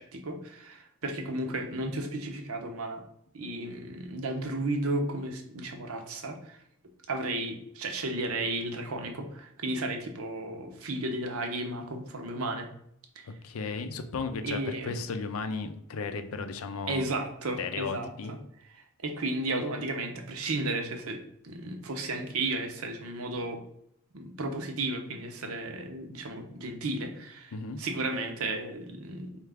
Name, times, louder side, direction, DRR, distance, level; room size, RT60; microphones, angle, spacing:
voice 1, 0.0-3.0 3.3-6.6 7.1-12.7 13.2-13.3 14.4-15.0 16.9-18.4 18.7-23.6 24.1-29.3, right 2 dB, 70° right, 4 dB, 0.7 m, -34 dB
voice 2, 13.4-17.1 17.6-18.3 27.5-27.8, left 4 dB, 70° left, 8 dB, 0.5 m, -35 dB
4.6 x 2.4 x 3.4 m, 0.73 s
head